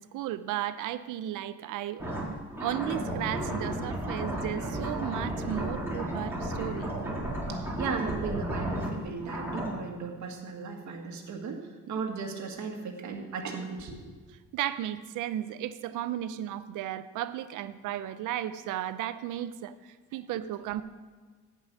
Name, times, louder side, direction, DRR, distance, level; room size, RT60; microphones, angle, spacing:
voice 1, 0.0-2.1 2.6-6.9 14.5-20.8, right 12 dB, 90° right, 13 dB, 0.6 m, -34 dB
sound 1, 2.0-9.7, right 1 dB, 10° right, 3.5 m, -33 dB
voice 2, 7.5-14.1, right 5 dB, 70° right, 3 dB, 1.8 m, -36 dB
16.0 x 5.5 x 6.3 m, 1.5 s
cardioid pair, 90°, 30 cm